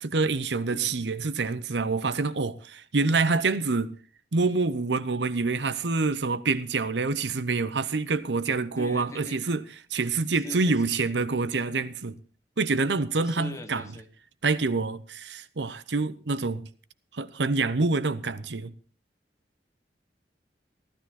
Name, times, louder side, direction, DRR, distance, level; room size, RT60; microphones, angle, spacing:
voice 1, 0.0-3.9 4.3-9.6 9.9-12.1 12.6-13.8 14.4-16.7 17.1-18.7, right 3 dB, 90° right, 0.8 m, -26 dB
voice 2, 0.7-1.1 8.8-9.4 10.3-11.1 13.2-14.1, left 2 dB, 20° left, 1.3 m, -41 dB
15.0 x 13.0 x 4.2 m
head